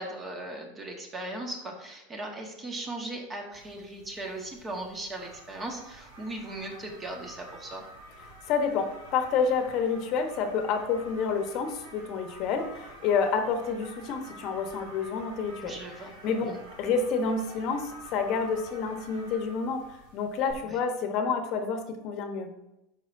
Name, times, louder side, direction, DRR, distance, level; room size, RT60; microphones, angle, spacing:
voice 1, 0.0-7.8 15.6-16.1 16.5-16.6 20.6-20.8, right 2 dB, 20° right, 1 dB, 1.7 m, -38 dB
sound 1, 3.5-20.5, right 1 dB, 80° right, 2.0 m, -49 dB
voice 2, 8.5-15.8 16.2-22.5, left 5 dB, 50° left, 6 dB, 1.1 m, -29 dB
12.0 x 4.9 x 2.7 m, 0.90 s
supercardioid pair, 130°, 0 cm